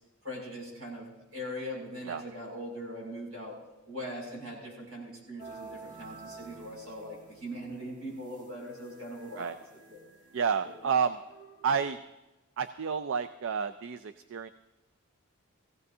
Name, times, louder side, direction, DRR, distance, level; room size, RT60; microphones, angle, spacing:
voice 1, 0.2-1.1 1.3-3.6 3.9-9.5 9.9-10.0, equal, 80° right, -2 dB, 6.2 m, -40 dB
sound 1, 5.4-12.0, right 4 dB, 40° right, 1.4 m, -51 dB
voice 2, 10.3-11.2 11.6-12.0 12.6-14.5, right 6 dB, 60° right, 11 dB, 0.4 m, -30 dB
19.0 x 15.5 x 2.8 m, 1.0 s
head